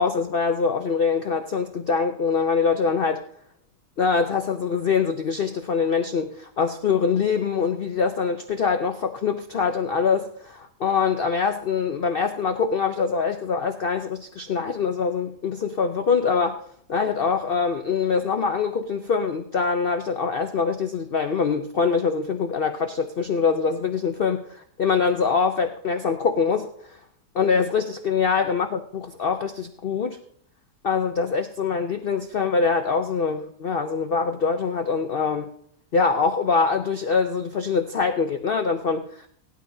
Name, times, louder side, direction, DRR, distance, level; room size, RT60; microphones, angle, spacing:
voice 1, 0.0-3.2 4.0-16.6 16.9-27.0 27.3-30.2 30.8-35.5 35.9-39.3, left 5 dB, 65° left, 6 dB, 0.5 m, -24 dB
18.0 x 12.0 x 2.7 m, 0.65 s
omnidirectional pair, 1.7 m